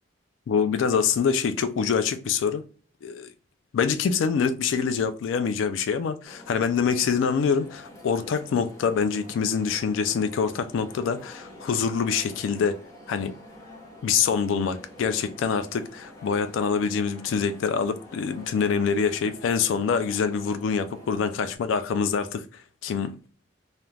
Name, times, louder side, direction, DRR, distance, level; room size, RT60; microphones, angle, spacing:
voice 1, 0.5-2.6 3.0-3.3 3.7-12.8 13.1-13.4 14.0-23.3, left 6 dB, 80° left, 0.3 m, -25 dB
sound 1, 6.2-21.6, left 1 dB, 15° left, 0.7 m, -47 dB
2.4 x 2.1 x 3.1 m
head